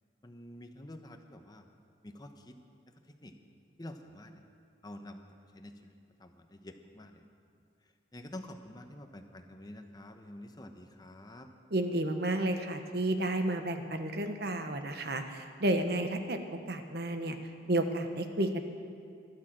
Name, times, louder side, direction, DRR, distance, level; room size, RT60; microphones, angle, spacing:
voice 1, 0.2-1.7 2.0-2.6 3.2-3.3 3.8-4.4 4.8-5.2 5.5-5.9 6.2-7.2 8.1-11.5, left 1 dB, 20° left, 6 dB, 0.9 m, -48 dB
voice 2, 11.7-16.4 16.7-17.4 17.7-18.6, right 1 dB, 60° right, 7 dB, 1.1 m, -31 dB
14.0 x 12.0 x 7.5 m, 2.4 s
head